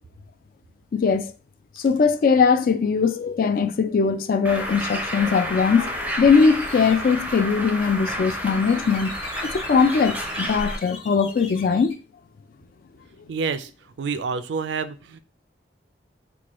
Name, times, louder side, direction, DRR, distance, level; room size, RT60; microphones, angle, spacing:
voice 1, 0.9-1.3 1.8-9.1 9.4-12.0, left 5 dB, 50° left, 0.3 m, -20 dB
Bird, 4.4-10.8, equal, 10° right, 0.5 m, -30 dB
sound 1, 5.0-11.9, left 3 dB, 35° left, 1.2 m, -43 dB
voice 2, 13.3-13.7 14.0-15.2, right 5 dB, 80° right, 0.4 m, -28 dB
4.4 x 2.2 x 3.0 m
head